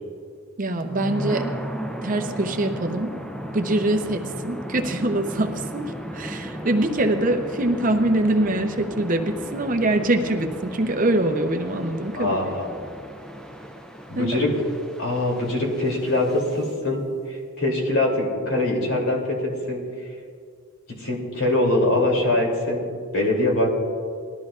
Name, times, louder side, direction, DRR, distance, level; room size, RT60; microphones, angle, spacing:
voice 1, 0.6-1.5 2.0-3.1 3.5-12.6 14.2-14.3, right 1 dB, 40° right, 4 dB, 0.7 m, -24 dB
sound 1, 0.8-16.7, equal, 5° left, 0.5 m, -35 dB
voice 2, 12.1-12.6 14.1-14.5 15.0-17.0 17.3-19.4 19.7-19.8 21.0-22.8 23.1-23.7, left 1 dB, 70° left, -1 dB, 2.8 m, -23 dB
19.5 x 13.0 x 2.4 m, 2.1 s
head